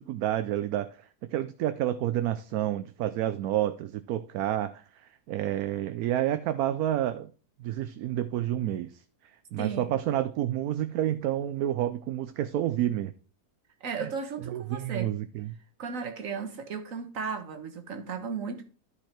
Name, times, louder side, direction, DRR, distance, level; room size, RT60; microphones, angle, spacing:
voice 1, 0.0-7.3 7.6-9.0 9.5-13.1 13.9-14.1 14.5-15.5, right 12 dB, 75° right, 1.1 m, -29 dB
voice 2, 9.6-10.0 13.8-15.1 15.8-18.7, right 5 dB, 60° right, 1.6 m, -35 dB
12.5 x 4.8 x 4.5 m
omnidirectional pair, 1.7 m